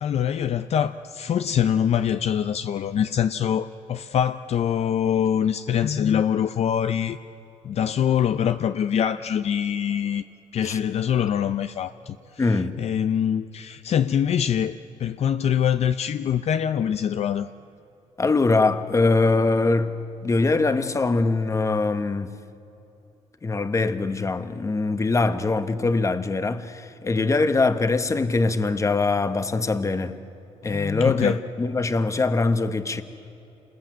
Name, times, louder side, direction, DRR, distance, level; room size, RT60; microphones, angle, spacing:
voice 1, 0.0-7.2 7.6-10.2 10.5-12.2 12.5-17.5 30.7-31.4, left 9 dB, 55° left, 0.6 m, -24 dB
voice 2, 12.4-12.7 18.2-19.9 20.2-22.3 23.4-30.2 30.6-33.0, left 3 dB, 25° left, 1.2 m, -22 dB
28.0 x 21.0 x 9.2 m
cardioid pair, 115°, 13 cm